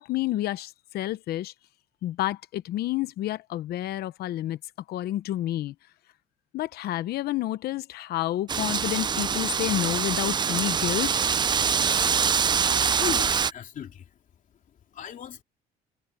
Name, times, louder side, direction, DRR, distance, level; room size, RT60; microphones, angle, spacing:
voice 1, 0.0-1.5 2.0-4.6 4.9-5.7 6.5-11.2, left 14 dB, 70° left, 0.8 m, -29 dB
Wind, 8.5-13.5, right 6 dB, 25° right, 0.4 m, -24 dB
voice 2, 13.0-14.1 14.9-15.4, left 9 dB, 50° left, 2.9 m, -35 dB
cardioid pair, 110°, 17 cm